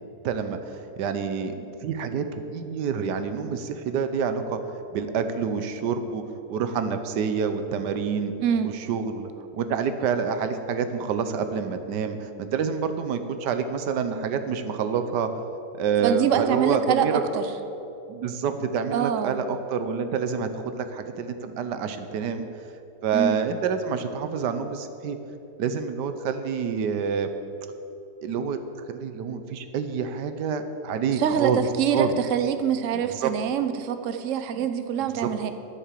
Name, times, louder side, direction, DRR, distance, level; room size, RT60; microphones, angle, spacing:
voice 1, 0.2-1.5 1.8-4.6 4.9-6.2 6.5-8.3 8.6-15.3 15.7-17.4 18.1-22.7 23.0-25.2 25.6-27.3 28.2-28.6 28.9-31.6 31.9-32.1 33.0-33.3 34.6-34.7 35.1-35.3, right 6 dB, 90° right, 9 dB, 1.4 m, -27 dB
voice 2, 8.4-8.7 16.0-17.4 18.9-19.4 23.1-23.4 31.2-35.5, right 8 dB, 60° right, 9 dB, 1.0 m, -25 dB
10.0 x 8.9 x 7.5 m, 2.8 s
omnidirectional pair, 1.8 m